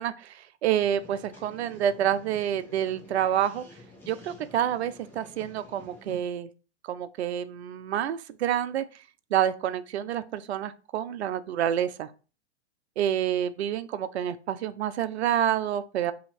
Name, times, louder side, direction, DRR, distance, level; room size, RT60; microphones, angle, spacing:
voice 1, 0.0-3.6 4.1-6.5 6.8-8.8 9.3-12.1 13.0-16.1, right 10 dB, 70° right, 13 dB, 0.5 m, -28 dB
sound 1, 0.8-6.2, left 2 dB, 5° left, 0.9 m, -50 dB
2.8 x 2.8 x 4.2 m, 0.36 s
hypercardioid pair, 105°, 34 cm